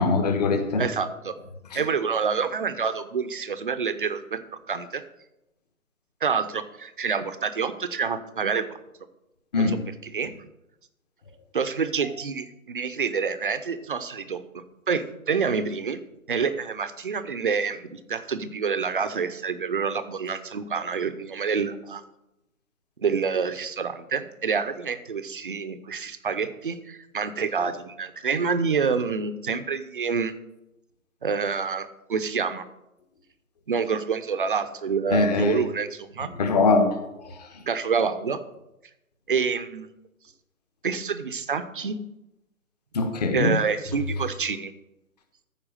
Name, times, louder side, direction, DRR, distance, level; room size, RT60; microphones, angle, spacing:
voice 1, 0.0-0.8 1.7-1.8 9.5-9.7 35.1-35.6 36.4-36.9 37.2-37.3 42.9-43.5, left 3 dB, 30° left, 6 dB, 1.3 m, -22 dB
voice 2, 0.7-1.3 1.7-5.0 6.2-8.8 9.6-9.8 10.0-10.3 11.5-16.0 16.3-22.0 23.0-30.3 31.2-32.6 33.7-36.3 37.7-38.4 39.3-39.9 40.8-42.0 43.3-44.7, right 5 dB, 35° right, 11 dB, 0.7 m, -27 dB
14.0 x 4.7 x 6.4 m, 0.91 s
figure-of-eight pair, 150°, 43 cm